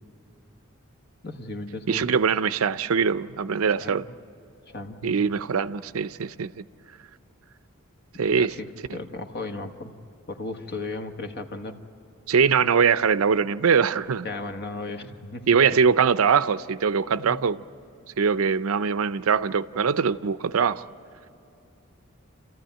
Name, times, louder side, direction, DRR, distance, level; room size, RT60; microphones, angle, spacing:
voice 1, 1.2-2.0 3.8-4.0 4.7-5.1 8.3-9.9 10.3-11.8 14.2-15.5 17.2-17.3, left 2 dB, 50° left, 1.4 m, -35 dB
voice 2, 1.9-4.0 5.0-6.6 8.2-8.5 8.9-9.0 12.3-14.3 15.5-17.6 18.2-20.8, right 6 dB, 70° right, 0.5 m, -22 dB
29.5 x 14.5 x 9.0 m
head